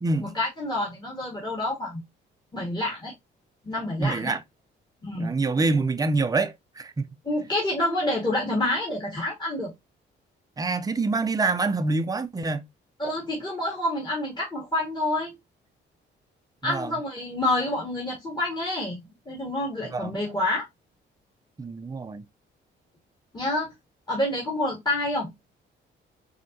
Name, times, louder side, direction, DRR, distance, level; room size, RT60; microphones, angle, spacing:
voice 1, 0.2-2.0 2.5-3.1 3.6-4.3 5.0-5.3 7.2-9.7 13.0-15.3 16.6-20.6 23.3-23.7 24.1-25.3, left 1 dB, 20° left, 1.7 m, -28 dB
voice 2, 4.0-4.4 5.2-7.1 10.6-12.7 16.7-16.9 19.9-20.1 21.6-22.2, right 3 dB, 20° right, 0.5 m, -26 dB
4.2 x 2.8 x 2.7 m
cardioid pair, 90°, 20 cm